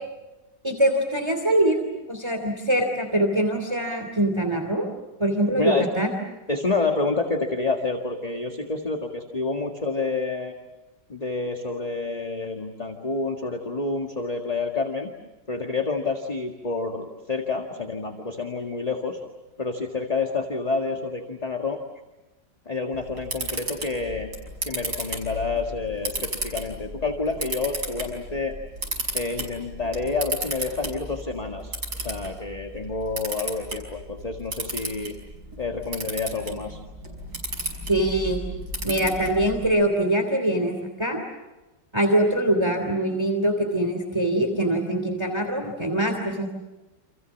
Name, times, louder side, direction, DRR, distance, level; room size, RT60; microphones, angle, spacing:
voice 1, 0.6-4.9 5.2-6.1 37.9-38.4 38.8-41.2 41.9-46.5, right 1 dB, 15° right, 4 dB, 2.9 m, -23 dB
voice 2, 5.5-5.9 6.5-10.5 11.1-15.1 15.5-19.2 19.6-21.8 22.7-24.3 24.6-28.6 29.1-35.1 35.6-36.8, left 3 dB, 20° left, 3 dB, 1.9 m, -28 dB
Camera, 22.9-39.7, right 1 dB, 65° right, 6.5 m, -34 dB
29.0 x 28.0 x 7.3 m, 1.1 s
omnidirectional pair, 1.9 m